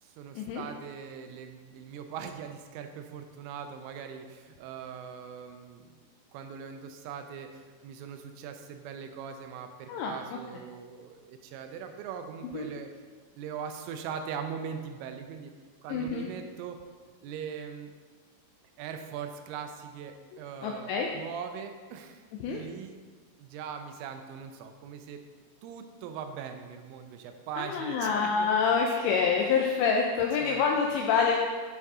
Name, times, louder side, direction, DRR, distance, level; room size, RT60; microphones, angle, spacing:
voice 1, 0.0-5.9 6.3-12.9 13.4-15.5 15.8-16.8 17.2-17.9 18.8-22.9 23.4-25.2 25.6-28.5 30.4-30.6, right 7 dB, 90° right, 6 dB, 3.2 m, -41 dB
voice 2, 9.9-10.4 12.5-12.7 15.9-16.3 20.6-21.1 22.4-22.6 27.6-31.4, left 5 dB, 85° left, 1 dB, 2.5 m, -27 dB
10.5 x 4.7 x 3.6 m, 1.5 s
omnidirectional pair, 5.6 m